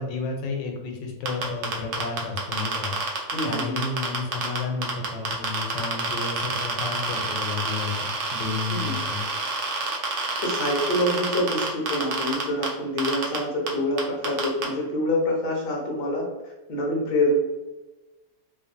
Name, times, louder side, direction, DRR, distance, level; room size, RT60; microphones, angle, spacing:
voice 1, 0.0-9.2, left 4 dB, 85° left, 2 dB, 1.3 m, -32 dB
sound 1, 1.3-4.6 4.8-12.7 13.0-13.4 13.7-13.8 14.0-14.6, right 4 dB, 65° right, 0.7 m, -28 dB
voice 2, 3.3-3.8 8.7-9.0 10.4-17.4, left 1 dB, 50° left, -2 dB, 0.7 m, -26 dB
2.9 x 2.7 x 2.5 m, 1.1 s
omnidirectional pair, 1.9 m